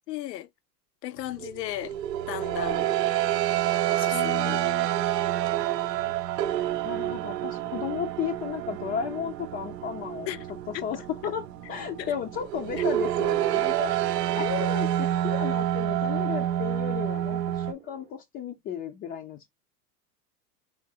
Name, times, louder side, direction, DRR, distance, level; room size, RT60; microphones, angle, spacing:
voice 1, 0.1-0.5 1.0-2.0 2.3-2.9 4.0-4.6 5.6-5.7 6.0-6.1 10.3-11.3 12.0-12.1, left 14 dB, 80° left, 0.6 m, -36 dB
sound 1, 1.3-17.7, right 12 dB, 80° right, 0.6 m, -28 dB
voice 2, 4.1-4.9 6.8-10.3 10.8-13.9 14.3-19.5, left 8 dB, 25° left, 0.5 m, -34 dB
sound 2, 7.0-18.1, right 9 dB, 25° right, 0.7 m, -52 dB
4.8 x 3.0 x 2.7 m
hypercardioid pair, 110°, 48 cm